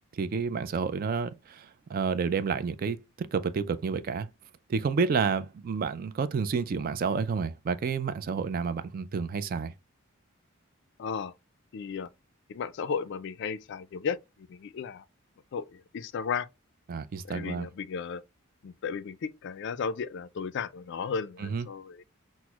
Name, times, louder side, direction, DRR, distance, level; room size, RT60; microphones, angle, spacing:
voice 1, 0.1-4.3 4.7-9.7 16.9-17.7 21.4-21.7, right 5 dB, 45° right, 0.3 m, -30 dB
voice 2, 11.0-11.3 11.7-12.1 12.5-14.2 14.5-15.0 15.5-16.5 17.3-18.2 18.6-22.0, left 6 dB, 55° left, 0.3 m, -34 dB
5.9 x 2.0 x 2.3 m
head